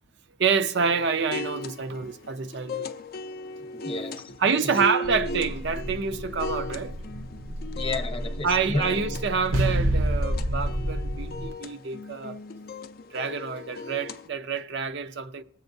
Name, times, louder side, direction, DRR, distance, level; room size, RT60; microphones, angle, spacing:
voice 1, 0.4-2.9 4.4-6.9 8.4-12.4 13.1-15.4, right 5 dB, 55° right, 0.5 m, -27 dB
sound 1, 0.7-14.3, left 1 dB, 45° left, 0.4 m, -38 dB
voice 2, 3.7-4.7 5.1-5.3 7.7-9.0, left 2 dB, 25° left, 0.8 m, -33 dB
sound 2, 5.0-11.5, right 1 dB, 70° right, 0.9 m, -29 dB
19.0 x 7.9 x 2.6 m
head